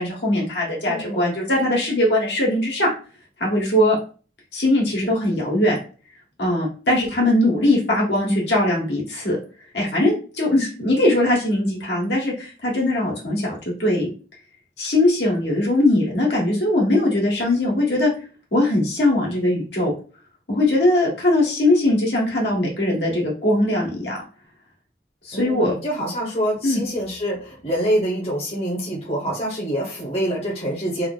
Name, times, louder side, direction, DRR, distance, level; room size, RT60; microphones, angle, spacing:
voice 1, 0.0-2.9 3.4-4.0 4.5-5.8 6.4-9.4 9.7-14.1 14.8-18.1 18.5-19.9 20.5-24.2 25.2-25.7 26.6-26.8, left 1 dB, 75° left, -4 dB, 1.6 m, -20 dB
voice 2, 0.8-1.4 25.3-31.1, equal, 35° left, -4 dB, 0.9 m, -26 dB
3.4 x 2.0 x 3.8 m, 0.38 s
head